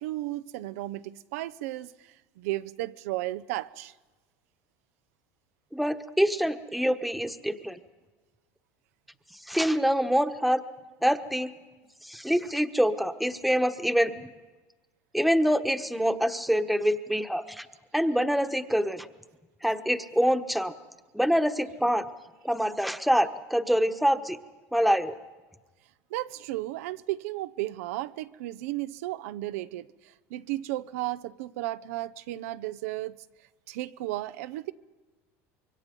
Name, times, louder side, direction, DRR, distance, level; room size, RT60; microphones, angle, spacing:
voice 1, 0.0-3.9 26.1-33.2 33.7-34.7, right 16 dB, 80° right, 0.6 m, -34 dB
voice 2, 5.7-7.8 9.5-10.6 11.0-11.5 12.0-14.3 15.1-17.7 17.9-19.1 19.6-20.7 21.1-22.1 22.4-24.4 24.7-25.1, equal, ahead, 1.2 m, -25 dB
25.5 x 23.0 x 5.3 m
supercardioid pair, 100°, 8 cm